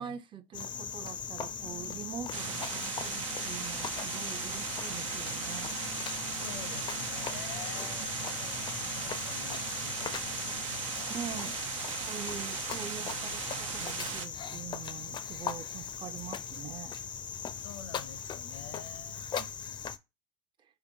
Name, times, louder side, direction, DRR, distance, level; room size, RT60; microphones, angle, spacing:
voice 1, 0.0-5.7 8.0-8.1 11.1-11.6 11.9-16.9 19.4-19.5, right 8 dB, 30° right, 0.5 m, -44 dB
Cricket, 0.5-20.0, left 7 dB, 30° left, 0.4 m, -39 dB
sound 1, 1.4-11.4, right 5 dB, 75° right, 1.2 m, -53 dB
sound 2, 2.3-14.3, right 8 dB, 90° right, 0.6 m, -38 dB
voice 2, 6.4-11.6 17.6-19.3, left 8 dB, 80° left, 0.6 m, -49 dB
5.0 x 2.9 x 2.6 m
hypercardioid pair, 85°, 16 cm